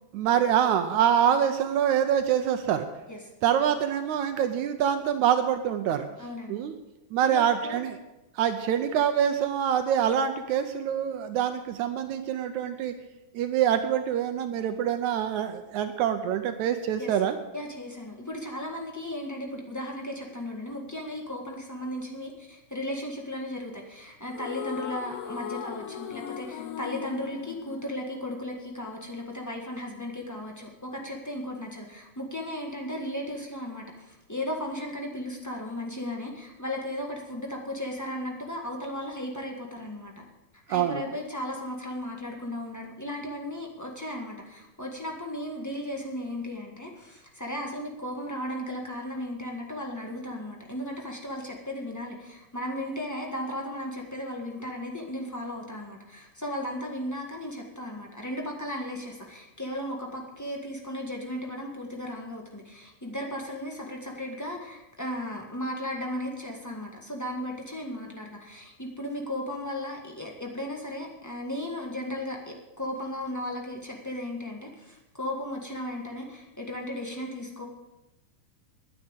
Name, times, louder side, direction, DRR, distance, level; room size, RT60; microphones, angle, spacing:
voice 1, 0.1-2.9 3.4-6.1 6.5-6.7 7.1-8.0 8.4-12.9 13.3-17.4 40.7-41.0, right 9 dB, 75° right, 8 dB, 2.0 m, -25 dB
voice 2, 6.2-6.6 7.2-7.8 17.0-17.2 17.5-40.2 40.7-77.6, left 1 dB, 15° left, 0 dB, 0.5 m, -35 dB
sound 1, 24.3-28.7, left 9 dB, 70° left, 1.5 m, -38 dB
10.5 x 9.7 x 8.1 m, 1.0 s
omnidirectional pair, 3.6 m